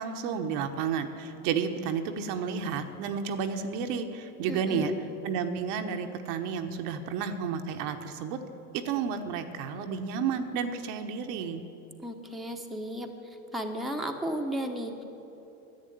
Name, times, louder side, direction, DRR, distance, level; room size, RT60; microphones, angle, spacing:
voice 1, 0.0-4.9 5.2-8.4 8.7-11.6, right 6 dB, 60° right, 6 dB, 1.2 m, -31 dB
voice 2, 4.5-4.9 12.0-13.1 13.5-15.0, right 1 dB, ahead, 2 dB, 1.1 m, -34 dB
11.0 x 8.1 x 9.3 m, 3.0 s
hypercardioid pair, 90°, 45 cm